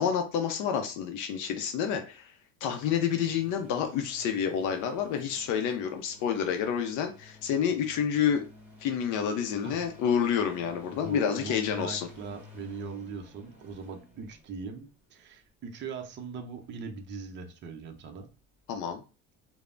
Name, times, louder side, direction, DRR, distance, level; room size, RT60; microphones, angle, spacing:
voice 1, 0.0-2.3 2.6-8.4 8.8-12.1 18.7-19.0, left 8 dB, 60° left, 6 dB, 0.5 m, -29 dB
sound 1, 2.6-14.9 16.6-16.7, left 2 dB, 5° right, 1.5 m, -54 dB
voice 2, 9.5-9.8 11.0-18.3, right 5 dB, 30° right, 4 dB, 0.5 m, -40 dB
3.1 x 2.0 x 2.5 m, 0.33 s
supercardioid pair, 90°, 36 cm